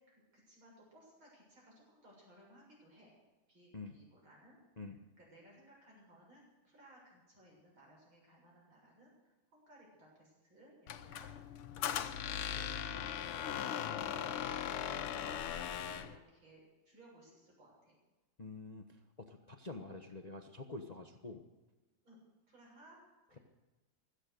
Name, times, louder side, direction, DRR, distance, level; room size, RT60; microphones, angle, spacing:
voice 1, 0.0-3.1 3.5-4.9 5.2-18.0 22.0-22.2 22.5-23.0, right 1 dB, 65° right, -3 dB, 8.0 m, -61 dB
Squeak, 10.9-16.2, left 9 dB, 85° left, 1.8 m, -39 dB
voice 2, 18.4-21.4, left 3 dB, 40° left, 6 dB, 0.5 m, -47 dB
16.5 x 13.0 x 6.7 m, 1.1 s
omnidirectional pair, 2.4 m